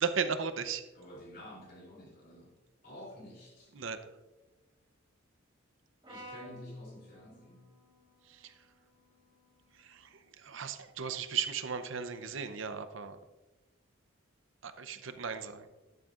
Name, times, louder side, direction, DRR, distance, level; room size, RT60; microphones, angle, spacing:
voice 1, 0.0-0.8 3.7-4.0 8.3-8.5 9.8-10.1 10.4-13.2 14.6-15.7, right 6 dB, 65° right, 10 dB, 0.7 m, -36 dB
voice 2, 0.9-2.5 2.8-3.7 6.1-7.6, left 1 dB, 45° left, -3 dB, 3.2 m, -50 dB
Brass instrument, 6.0-10.3, equal, 20° right, 1.5 m, -54 dB
14.0 x 10.5 x 2.5 m, 1.1 s
head